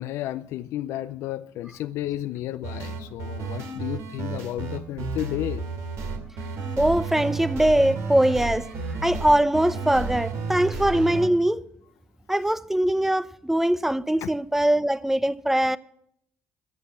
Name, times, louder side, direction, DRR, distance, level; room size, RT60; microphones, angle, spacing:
voice 1, 0.0-5.6 14.2-14.3, left 14 dB, 75° left, 0.5 m, -32 dB
sound 1, 2.6-11.3, right 4 dB, 75° right, 2.5 m, -32 dB
voice 2, 6.8-8.7 9.0-11.6 12.3-15.8, right 1 dB, 5° right, 0.7 m, -22 dB
13.5 x 8.1 x 8.6 m
supercardioid pair, 75°, 5 cm